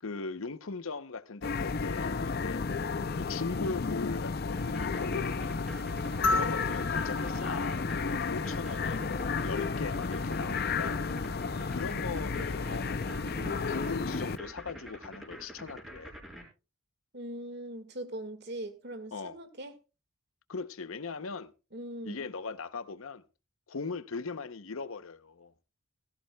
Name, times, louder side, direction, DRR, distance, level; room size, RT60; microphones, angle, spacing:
voice 1, 0.0-2.6 3.1-5.6 6.3-11.1 11.7-13.2 13.7-16.1 19.1-19.4 20.5-21.5 22.0-23.2 23.7-25.5, left 4 dB, 80° left, 0.8 m, -39 dB
sound 1, 1.4-14.4, left 4 dB, 50° left, 0.6 m, -32 dB
sound 2, 4.6-16.4, equal, ahead, 4.1 m, -46 dB
sound 3, 6.2-8.8 10.4-10.5, left 2 dB, 65° left, 1.4 m, -34 dB
voice 2, 6.3-6.8 11.9-13.7 17.1-19.7 21.7-22.3, right 1 dB, 55° right, 1.8 m, -42 dB
17.0 x 14.5 x 2.3 m
head